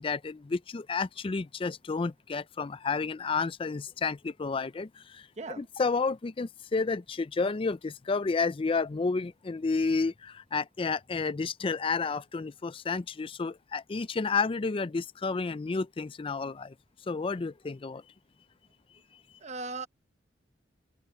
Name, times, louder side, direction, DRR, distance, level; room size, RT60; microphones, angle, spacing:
voice 1, 0.0-5.3 5.6-16.7 17.1-18.0, left 4 dB, 30° left, 0.4 m, -31 dB
voice 2, 19.4-19.9, right 3 dB, 40° right, 1.0 m, -37 dB
head